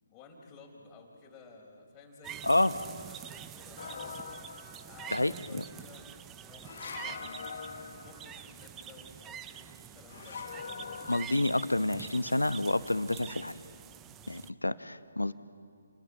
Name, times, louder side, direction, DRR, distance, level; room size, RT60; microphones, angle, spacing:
voice 1, 0.1-4.3 4.9-6.1 6.4-7.4 7.9-10.4, left 4 dB, 15° left, -1 dB, 4.7 m, -54 dB
sound 1, 2.2-14.5, right 9 dB, 15° right, 0.6 m, -46 dB
sound 2, 3.8-5.1 6.6-8.5 10.1-11.3, left 5 dB, 50° left, 1.6 m, -43 dB
voice 2, 5.1-5.6 11.1-13.6 14.3-15.3, left 2 dB, 90° left, 13 dB, 1.0 m, -29 dB
29.0 x 22.0 x 7.3 m, 2.2 s
figure-of-eight pair, 145°, 0 cm